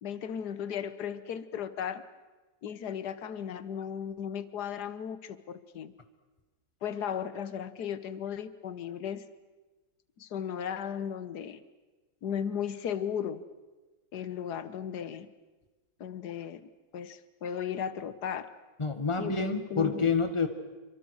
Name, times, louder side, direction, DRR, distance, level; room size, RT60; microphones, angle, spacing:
voice 1, 0.0-2.0 2.6-5.9 6.8-9.2 10.2-11.6 12.2-13.4 14.1-15.3 16.0-18.5 19.2-20.0, left 8 dB, 85° left, 13 dB, 1.7 m, -36 dB
voice 2, 18.8-20.5, left 5 dB, 20° left, 8 dB, 1.8 m, -28 dB
28.5 x 25.5 x 6.5 m, 1.2 s
omnidirectional pair, 1.7 m